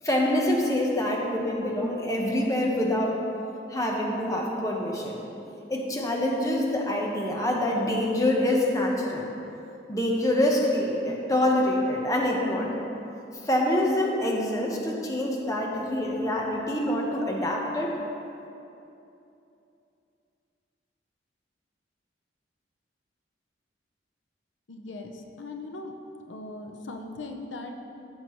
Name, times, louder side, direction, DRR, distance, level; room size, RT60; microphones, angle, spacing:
voice 1, 0.0-3.2 3.7-5.2 5.7-9.3 9.9-12.7 13.4-18.0, left 1 dB, 20° left, -1 dB, 1.0 m, -26 dB
voice 2, 24.7-25.9 26.3-27.8, left 2 dB, 85° left, 4 dB, 0.8 m, -39 dB
14.5 x 7.5 x 3.1 m, 2.8 s
head